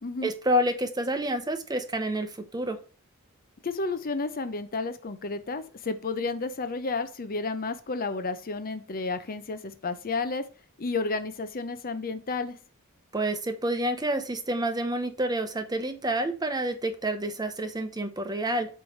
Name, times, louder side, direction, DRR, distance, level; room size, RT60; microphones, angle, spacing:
voice 1, 0.2-2.8 13.1-18.7, right 1 dB, 20° right, 8 dB, 0.9 m, -28 dB
voice 2, 3.6-10.5 10.8-12.6, left 3 dB, 45° left, 10 dB, 0.7 m, -31 dB
8.1 x 3.2 x 5.3 m, 0.37 s
head